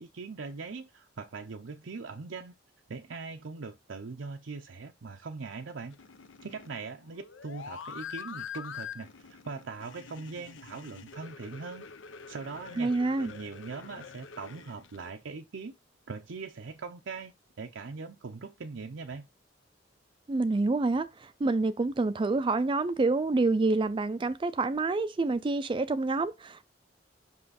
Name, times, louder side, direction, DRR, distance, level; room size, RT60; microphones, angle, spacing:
voice 1, 0.0-2.5 2.9-6.0 6.4-11.9 12.3-15.7 16.1-19.3, right 4 dB, 80° right, 0.6 m, -41 dB
sound 1, 5.9-15.1, left 7 dB, 85° left, 0.7 m, -45 dB
voice 2, 12.8-13.3 20.3-26.7, right 3 dB, 25° right, 0.4 m, -27 dB
5.6 x 5.5 x 4.1 m
head